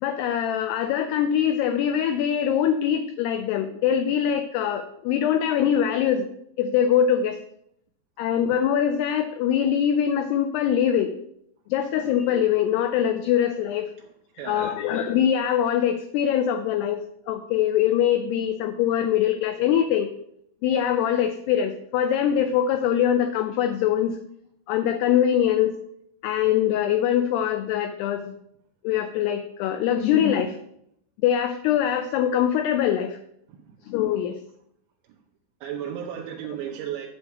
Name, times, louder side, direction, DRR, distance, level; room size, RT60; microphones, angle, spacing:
voice 1, 0.0-6.3 6.6-7.4 8.2-11.2 11.7-13.9 14.5-20.1 20.6-24.2 24.7-25.7 26.2-28.4 28.8-30.6 31.2-33.2 33.9-34.4, left 9 dB, 90° left, 8 dB, 2.3 m, -23 dB
voice 2, 14.4-14.8 33.5-33.8 35.6-37.1, right 9 dB, 80° right, 0 dB, 2.8 m, -34 dB
8.4 x 7.9 x 3.4 m, 0.73 s
omnidirectional pair, 5.2 m